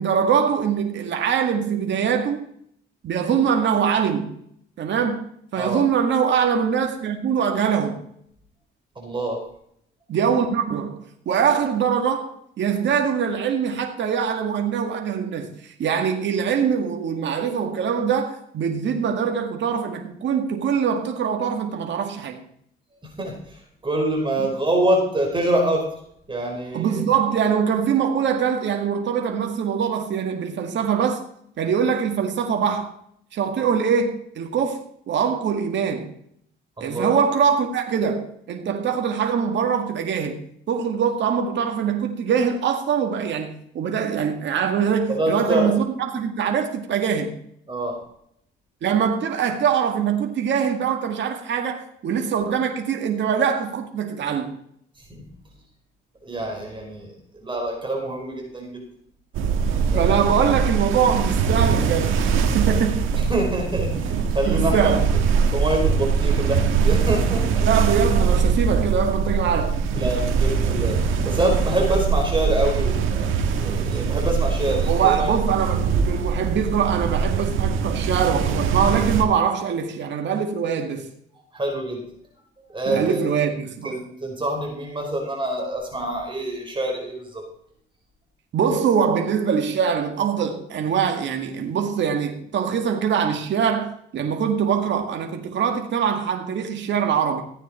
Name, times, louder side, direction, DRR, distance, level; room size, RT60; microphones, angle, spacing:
voice 1, 0.0-2.5 3.0-4.3 4.8-5.2 5.5-8.0 10.1-12.3 12.6-22.4 26.7-31.2 31.6-32.9 33.3-34.8 35.1-36.1 36.8-40.4 40.7-47.3 48.8-54.5 59.9-62.1 62.5-63.1 64.5-65.0 67.7-69.7 74.9-81.1 82.9-83.9 88.5-97.4, right 7 dB, 65° right, 2.0 m, -23 dB
voice 2, 8.9-9.4 23.0-25.9 26.3-27.0 36.8-37.2 45.1-45.7 47.7-48.0 55.1-55.2 56.2-58.9 59.9-60.3 62.7-62.8 63.1-64.9 65.5-67.7 70.0-71.0 71.2-75.3 81.5-82.0 82.7-83.3 83.8-87.4, right 1 dB, 25° right, 4.6 m, -26 dB
sound 1, 59.3-79.2, right 6 dB, 85° right, 1.8 m, -22 dB
15.5 x 9.2 x 4.4 m
cardioid pair, 90°, 20 cm